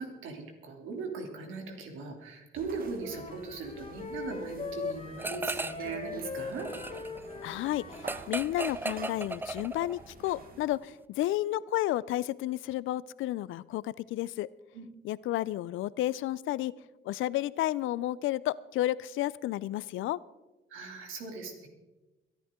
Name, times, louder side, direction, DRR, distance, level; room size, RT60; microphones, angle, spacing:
voice 1, 0.0-6.7 14.7-14.8 20.7-21.7, right 4 dB, 85° right, 3 dB, 2.8 m, -39 dB
sound 1, 2.5-10.6, right 4 dB, 45° right, 1.6 m, -50 dB
sound 2, 3.0-8.2, left 4 dB, 35° left, 1.8 m, -40 dB
sound 3, 5.2-5.9 6.2-10.1, right 2 dB, 10° right, 0.4 m, -36 dB
voice 2, 7.4-14.5 15.0-16.7 17.0-20.2, left 15 dB, 80° left, 20 dB, 0.5 m, -32 dB
22.5 x 11.0 x 3.7 m, 1.1 s
cardioid pair, 90°, 20 cm